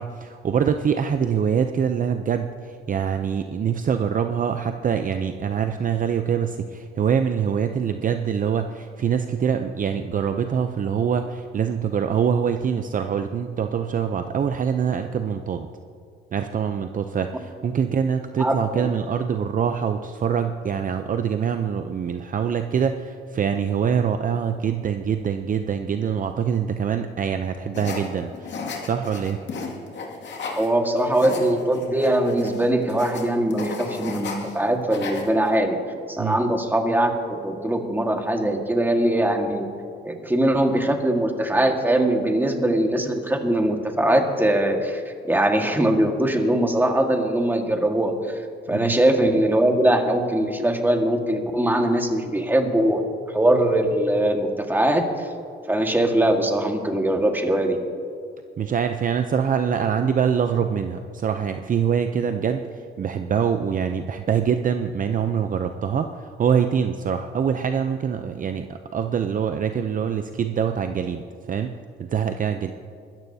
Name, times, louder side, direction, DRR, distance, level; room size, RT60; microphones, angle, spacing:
voice 1, 0.0-15.7 16.3-29.4 36.2-36.4 48.7-49.0 58.6-72.7, right 7 dB, 45° right, 7 dB, 0.6 m, -24 dB
voice 2, 18.4-18.9 30.6-35.8 36.1-39.7 40.1-48.4 48.7-53.0 53.3-55.3 55.7-57.8, right 1 dB, 10° right, 3 dB, 1.7 m, -21 dB
sound 1, 27.7-30.7 31.0-34.6 34.8-35.5, left 4 dB, 65° left, 2.3 m, -34 dB
22.0 x 13.5 x 2.8 m, 2.3 s
cardioid pair, 90°, 20 cm